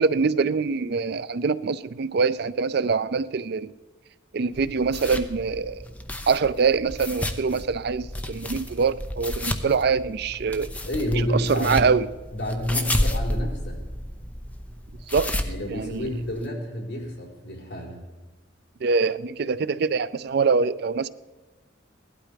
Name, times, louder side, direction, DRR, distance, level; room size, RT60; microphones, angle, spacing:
voice 1, 0.0-3.7 4.3-5.8 6.3-10.7 11.2-12.1 15.1-15.3 15.7-16.1 18.8-21.1, right 5 dB, 55° right, 0.4 m, -24 dB
sound 1, 4.5-16.5, left 1 dB, 5° left, 0.7 m, -32 dB
voice 2, 10.9-11.9 12.4-13.8 15.4-18.0, equal, 55° left, 4.4 m, -29 dB
17.0 x 12.0 x 5.2 m
head